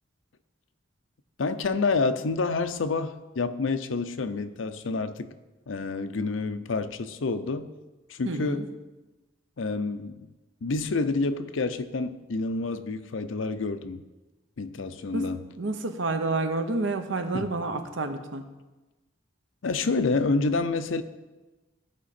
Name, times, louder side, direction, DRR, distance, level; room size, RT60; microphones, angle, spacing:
voice 1, 1.4-5.3 5.7-7.7 8.1-8.6 9.6-10.3 10.6-14.0 14.6-15.4 17.3-17.5 19.6-21.0, left 3 dB, 85° left, 11 dB, 0.6 m, -28 dB
voice 2, 8.2-8.6 15.1-15.3 15.6-18.5, right 3 dB, 80° right, 7 dB, 0.9 m, -29 dB
14.5 x 5.0 x 4.3 m, 1.1 s
head